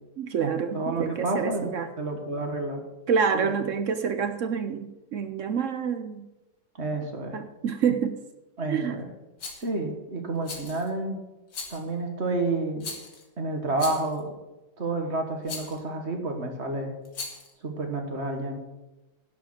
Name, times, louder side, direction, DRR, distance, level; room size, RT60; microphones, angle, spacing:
voice 1, 0.2-1.9 3.1-6.2 7.3-8.2 8.7-9.0, right 6 dB, 65° right, 9 dB, 0.8 m, -27 dB
voice 2, 0.7-1.7 2.0-2.8 3.4-3.5 6.8-7.4 8.6-9.1 9.6-11.2 11.7-12.9 13.4-14.3 14.8-17.0 17.6-18.6, right 2 dB, 40° right, 4 dB, 1.8 m, -29 dB
Rattle, 9.4-9.7 10.4-10.9 11.5-11.9 12.8-13.2 13.8-14.2 15.5-15.8 17.1-17.5, left 4 dB, 70° left, 2.5 m, -38 dB
11.0 x 6.7 x 7.8 m, 1.0 s
omnidirectional pair, 1.9 m